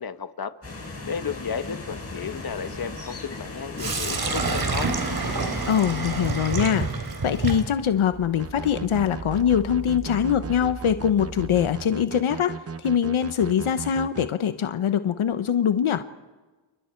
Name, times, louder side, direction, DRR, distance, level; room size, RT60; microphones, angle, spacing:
voice 1, 0.0-4.9, left 6 dB, 45° left, 9 dB, 1.4 m, -33 dB
sound 1, 0.6-5.7, left 2 dB, 30° left, 5.4 m, -37 dB
Sink (filling or washing), 3.8-11.7, right 4 dB, 45° right, 3.6 m, -30 dB
voice 2, 5.7-6.9 7.2-12.5 12.8-16.0, left 8 dB, 75° left, 10 dB, 1.1 m, -23 dB
sound 2, 8.4-14.3, right 5 dB, 30° right, 0.8 m, -37 dB
30.0 x 29.0 x 4.6 m, 1.2 s
cardioid pair, 70°, 49 cm